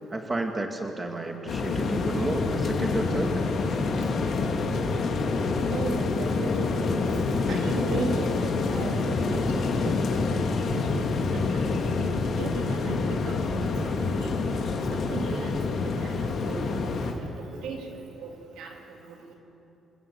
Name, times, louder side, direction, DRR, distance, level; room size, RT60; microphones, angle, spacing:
voice 1, 0.1-3.4 3.7-4.1, right 2 dB, 20° right, 3 dB, 2.2 m, -31 dB
sound 1, 1.5-17.1, left 4 dB, 60° left, 2.7 m, -27 dB
voice 2, 5.7-7.0 7.5-11.6 12.4-17.2 17.5-18.3 18.6-18.8 19.0-19.3, right 3 dB, 85° right, 1 dB, 3.5 m, -37 dB
27.5 x 17.0 x 7.1 m, 3.0 s
cardioid pair, 90°, 0 cm